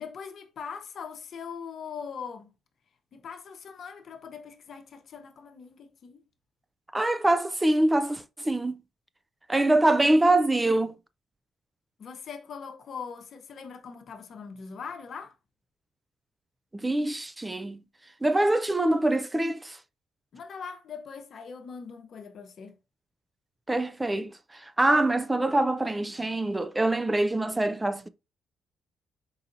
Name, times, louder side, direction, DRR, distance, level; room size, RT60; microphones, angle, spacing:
voice 1, 0.0-2.5 3.1-6.2 12.0-15.4 20.3-22.8, left 6 dB, 60° left, 0.8 m, -41 dB
voice 2, 6.9-8.7 9.5-11.0 16.7-17.8 18.2-19.8 23.7-28.1, right 1 dB, 15° right, 0.3 m, -24 dB
4.0 x 4.0 x 2.6 m
cardioid pair, 90°, 0 cm